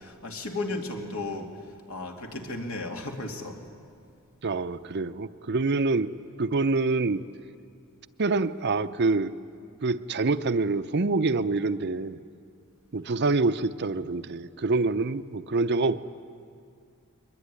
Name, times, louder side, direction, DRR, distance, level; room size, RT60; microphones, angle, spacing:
voice 1, 0.0-3.6, left 2 dB, 70° left, 2 dB, 2.8 m, -35 dB
voice 2, 4.4-6.1 6.4-7.2 8.2-9.3 9.8-12.2 12.9-16.0, right 3 dB, 50° right, 11 dB, 0.6 m, -26 dB
22.5 x 22.0 x 9.7 m, 2.3 s
head